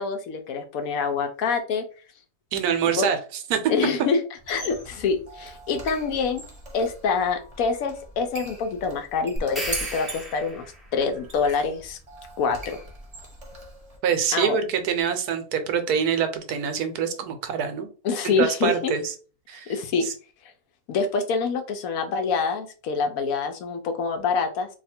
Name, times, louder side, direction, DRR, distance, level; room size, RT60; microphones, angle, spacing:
voice 1, 0.0-1.8 2.9-3.1 3.7-4.2 4.5-6.4 6.7-12.0 12.4-12.8 14.3-14.6 18.0-18.9 19.7-20.0 20.9-24.7, left 5 dB, 65° left, 6 dB, 1.0 m, -26 dB
voice 2, 2.5-3.2 3.5-3.6 14.0-17.9 18.2-19.1 19.5-19.7 20.0-20.1, right 7 dB, 75° right, 7 dB, 1.1 m, -25 dB
Squeak, 4.4-14.0, right 1 dB, 30° right, 0.8 m, -41 dB
sound 1, 9.4-10.9, right 1 dB, ahead, 0.3 m, -34 dB
2.8 x 2.4 x 4.2 m, 0.37 s
omnidirectional pair, 1.7 m